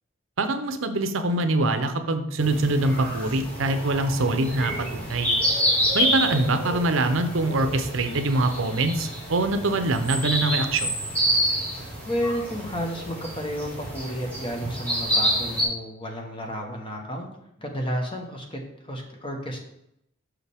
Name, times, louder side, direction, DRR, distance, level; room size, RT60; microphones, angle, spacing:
voice 1, 0.4-5.3 5.9-10.9, right 2 dB, 70° right, 8 dB, 0.7 m, -24 dB
sound 1, 2.4-15.6, equal, 10° left, 2.3 m, -28 dB
voice 2, 12.0-17.3 17.6-19.7, equal, 25° left, 2 dB, 1.1 m, -32 dB
6.9 x 5.9 x 3.5 m, 0.77 s
head